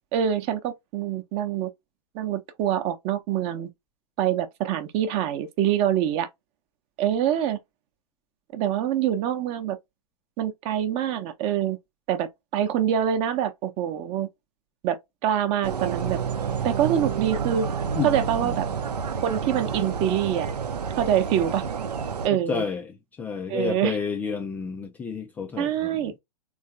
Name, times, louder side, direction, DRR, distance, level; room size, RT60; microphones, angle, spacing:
voice 1, 0.1-1.7 2.1-3.7 4.2-6.3 7.0-7.6 8.5-9.8 10.4-11.8 12.1-14.3 14.8-16.2 16.6-17.7 18.0-18.7 19.2-20.5 21.0-21.6 22.2-22.6 23.5-24.0 25.6-26.1, right 10 dB, 30° right, 0.7 m, -25 dB
sound 1, 15.6-22.3, right 6 dB, 75° right, 0.7 m, -29 dB
voice 2, 22.3-26.2, left 6 dB, 10° left, 0.3 m, -31 dB
3.6 x 3.2 x 2.7 m
figure-of-eight pair, 115°, 21 cm